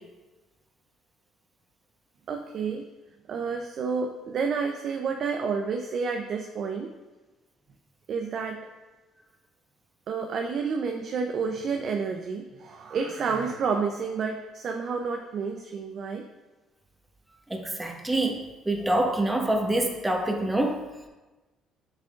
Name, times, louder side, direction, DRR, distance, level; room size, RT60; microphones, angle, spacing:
voice 1, 2.3-2.8 3.3-6.9 8.1-8.6 10.1-16.2, right 5 dB, 60° right, 3 dB, 0.5 m, -30 dB
voice 2, 17.5-18.4 18.6-20.8, right 1 dB, 15° right, 2 dB, 1.4 m, -26 dB
7.4 x 7.3 x 2.5 m, 1.2 s
hypercardioid pair, 60°, 0 cm